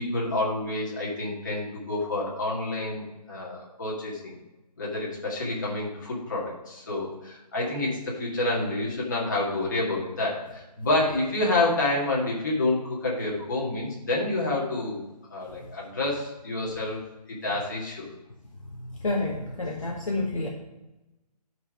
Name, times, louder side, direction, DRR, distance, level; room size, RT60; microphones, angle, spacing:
voice 1, 0.0-4.4 4.8-15.0 15.3-17.0 17.3-18.1, left 2 dB, 30° left, -4 dB, 2.0 m, -28 dB
voice 2, 19.0-20.5, left 2 dB, 50° left, -2 dB, 1.3 m, -28 dB
8.5 x 4.8 x 5.7 m, 1.0 s
hypercardioid pair, 180°, 21 cm